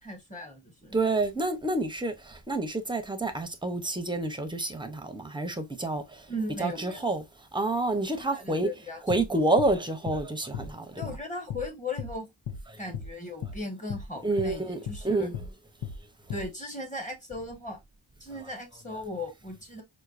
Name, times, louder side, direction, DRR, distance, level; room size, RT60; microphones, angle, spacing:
voice 1, 0.0-1.0 6.3-7.1 8.3-9.0 9.3-9.4 10.9-12.3 12.8-15.3 16.3-17.8 18.2-19.8, left 1 dB, 15° left, 1.2 m, -37 dB
voice 2, 0.9-2.1 2.5-6.0 6.6-7.2 7.5-8.7 9.1-10.8 14.2-14.8 15.0-15.3, right 2 dB, 10° right, 0.6 m, -28 dB
sound 1, 9.1-9.3 9.6-9.7 10.1-10.2 10.5-10.7 11.0-11.2 11.5-11.7 12.0-12.1 12.5-12.6 12.9-13.1 13.4-13.6 13.9-14.1 14.4-14.5 14.9-15.0 15.3-15.5 15.8-16.0 16.3-16.5, left 6 dB, 85° left, 0.7 m, -36 dB
4.4 x 2.2 x 2.4 m
wide cardioid pair, 75°, 47 cm